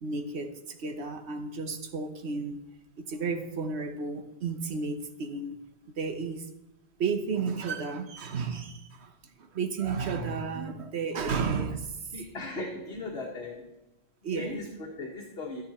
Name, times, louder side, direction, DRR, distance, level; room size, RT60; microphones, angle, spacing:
voice 1, 0.0-2.6 3.0-5.5 5.9-6.5 7.0-12.1 14.2-14.6, right 5 dB, 75° right, 1.3 m, -33 dB
voice 2, 12.1-13.7 14.3-15.6, left 2 dB, 70° left, 1.8 m, -38 dB
12.0 x 10.5 x 4.3 m
omnidirectional pair, 1.1 m